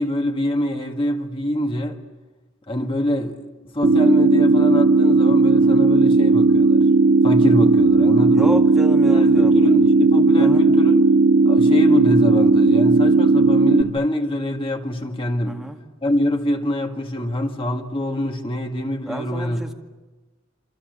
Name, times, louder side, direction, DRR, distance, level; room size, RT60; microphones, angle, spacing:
voice 1, 0.0-2.0 2.7-3.4 3.7-6.8 7.2-8.6 9.1-11.1 11.5-15.6 16.0-19.6, left 1 dB, 25° left, 1.8 m, -24 dB
sound 1, 3.8-13.8, right 3 dB, 55° right, 1.5 m, -15 dB
voice 2, 8.3-9.7 10.4-10.7 15.5-15.8 19.1-19.7, equal, ahead, 2.0 m, -30 dB
27.5 x 27.0 x 8.0 m
head